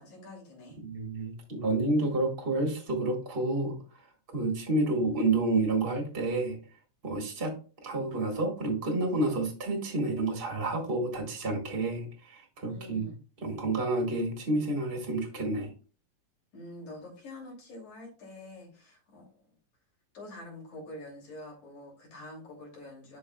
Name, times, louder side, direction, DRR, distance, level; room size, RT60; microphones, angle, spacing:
voice 1, 0.0-0.8 12.7-13.2 16.5-19.6 20.1-23.2, left 1 dB, 60° left, -2 dB, 4.0 m, -46 dB
voice 2, 0.8-3.8 4.3-6.6 7.0-7.5 7.8-13.1 13.4-15.7, right 2 dB, 25° right, 1 dB, 1.2 m, -29 dB
11.5 x 4.7 x 2.3 m, 0.38 s
omnidirectional pair, 3.8 m